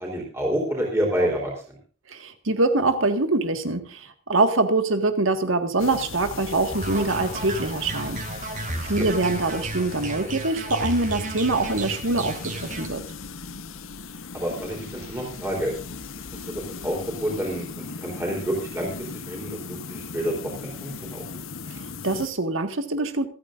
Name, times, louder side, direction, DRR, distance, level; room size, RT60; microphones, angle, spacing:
voice 1, 0.0-1.8 9.0-9.1 14.3-15.8 16.3-21.2, right 1 dB, 15° right, -2 dB, 3.6 m, -29 dB
voice 2, 2.1-8.2 8.9-13.0 21.7-23.3, right 2 dB, 75° right, 8 dB, 1.8 m, -24 dB
sound 1, 5.8-22.3, left 4 dB, 80° left, 1.0 m, -38 dB
sound 2, 6.7-12.9, right 2 dB, 40° right, 2.4 m, -33 dB
27.0 x 9.1 x 2.6 m, 0.42 s
head